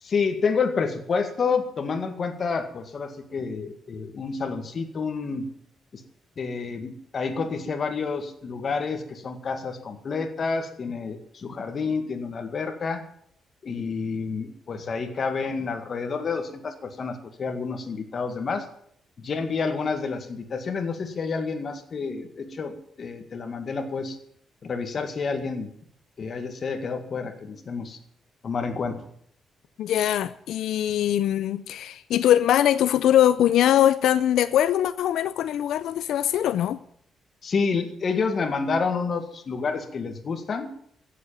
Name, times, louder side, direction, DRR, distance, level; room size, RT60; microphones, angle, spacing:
voice 1, 0.0-5.5 5.9-6.0 6.4-13.0 13.6-18.7 19.2-24.2 24.6-25.7 26.2-28.0 28.4-29.0 37.4-40.7, left 5 dB, 35° left, 1.9 m, -29 dB
voice 2, 29.8-36.8, left 11 dB, 85° left, 0.5 m, -22 dB
16.0 x 7.7 x 9.2 m
cardioid pair, 165°, 0 cm